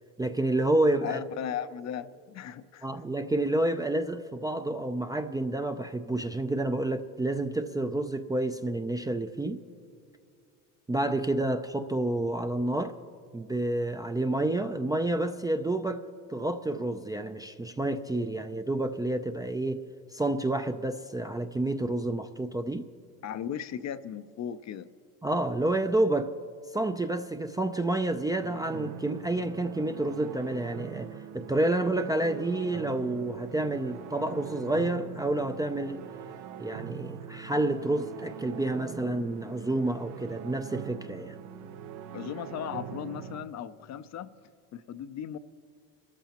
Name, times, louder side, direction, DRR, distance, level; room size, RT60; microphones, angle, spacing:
voice 1, 0.2-1.2 2.8-9.6 10.9-13.0 13.3-16.0 16.3-19.8 20.1-22.9 25.2-26.3 26.7-36.0 36.6-41.4, right 2 dB, 10° right, 0.4 m, -29 dB
voice 2, 1.0-3.0 23.2-24.9 42.1-44.4 44.7-45.4, left 9 dB, 45° left, 0.5 m, -37 dB
sound 1, 28.4-43.5, right 9 dB, 75° right, 0.8 m, -42 dB
26.5 x 14.0 x 2.9 m
supercardioid pair, 100°, 39 cm